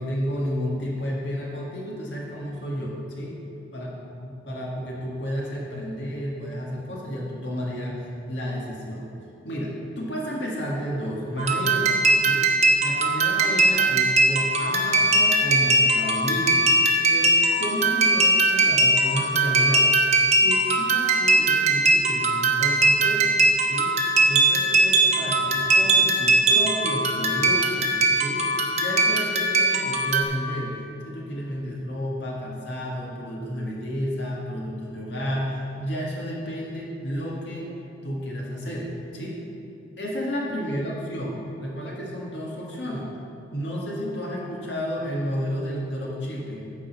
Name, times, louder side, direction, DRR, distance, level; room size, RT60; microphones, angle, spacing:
voice 1, 0.0-3.4 3.7-8.0 8.3-9.1 9.4-12.5 12.8-16.6 17.1-19.9 20.4-23.4 23.7-23.9 24.3-27.9 28.2-30.8 31.1-37.7 38.0-39.4 40.0-43.1 43.5-46.8, equal, 75° left, -4 dB, 1.8 m, -31 dB
sound 1, 11.4-30.2, right 2 dB, 40° right, 0.8 m, -20 dB
9.9 x 4.1 x 6.7 m, 2.8 s
head